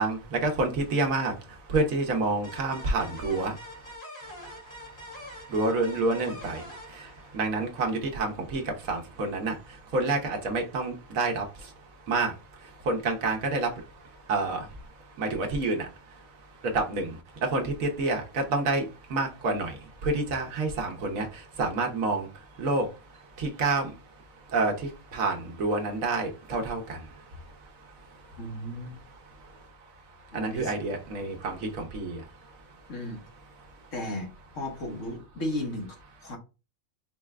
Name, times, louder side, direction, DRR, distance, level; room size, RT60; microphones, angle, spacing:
voice 1, 0.0-3.6 5.5-11.7 12.1-14.8 15.2-16.3 16.6-23.9 24.5-27.7 28.3-28.4 29.4-29.6 30.3-32.5, right 3 dB, 90° right, 1.4 m, -29 dB
sound 1, 2.4-7.9, equal, 55° left, 2.2 m, -45 dB
voice 2, 28.4-29.0 30.3-30.7 32.9-33.2 33.9-34.3 34.5-36.4, left 1 dB, 70° left, 1.6 m, -35 dB
4.8 x 2.4 x 3.2 m
omnidirectional pair, 1.4 m